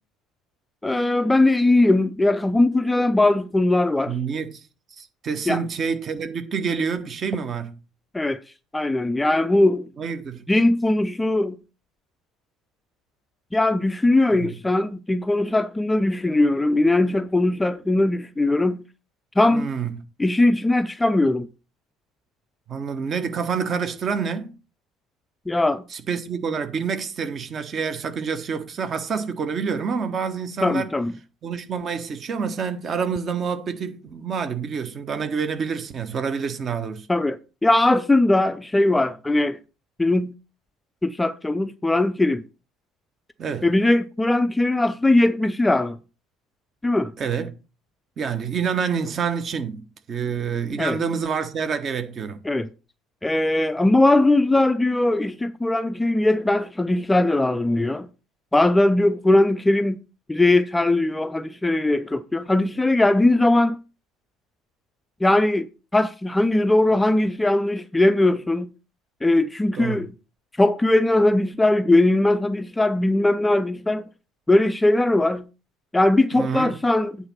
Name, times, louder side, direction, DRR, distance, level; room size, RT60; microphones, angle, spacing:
voice 1, 0.8-4.2 5.5-5.6 8.1-8.4 8.7-9.9 10.5-11.6 13.5-18.8 19.4-19.7 20.2-21.5 25.5-25.8 30.6-31.1 37.1-39.6 40.0-40.3 41.0-42.4 43.6-46.0 46.8-47.1 50.8-51.0 52.4-52.7 53.2-58.1 58.5-60.0 60.3-63.8 65.2-65.7 65.9-68.7 69.2-70.1 70.6-74.0 74.5-75.4 75.9-77.2, left 2 dB, 10° left, 0.5 m, -20 dB
voice 2, 4.1-4.6 4.9-7.8 10.0-10.4 14.4-14.5 19.5-20.0 22.7-24.5 25.9-30.9 31.4-37.1 43.4-43.7 47.2-47.5 48.2-52.4 69.7-70.1 76.3-76.8, right 6 dB, 40° right, 1.1 m, -27 dB
8.6 x 4.2 x 5.8 m
figure-of-eight pair, 60°, 0 cm